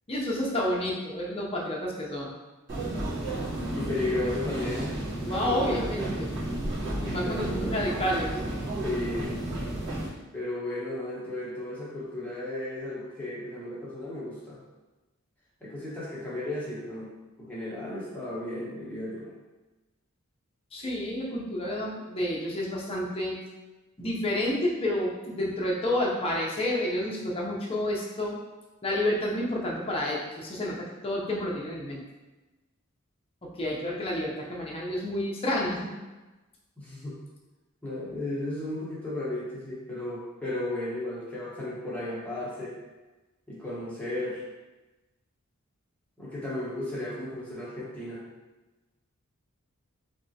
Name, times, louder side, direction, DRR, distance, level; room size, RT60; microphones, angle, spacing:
voice 1, 0.1-2.3 5.2-6.4 7.0-8.4 20.7-23.4 24.0-28.4 28.8-32.0 33.4-35.9, left 1 dB, 25° left, -3 dB, 0.7 m, -30 dB
sound 1, 2.7-10.1, right 1 dB, 55° right, 1.4 m, -32 dB
voice 2, 3.7-5.0 5.4-5.9 7.2-7.7 8.8-9.4 10.3-14.6 15.6-17.1 17.4-19.3 36.8-37.2 37.8-42.7 43.5-44.4 46.2-48.2, left 1 dB, 5° left, -8 dB, 1.0 m, -34 dB
3.4 x 3.0 x 2.8 m, 1.1 s
head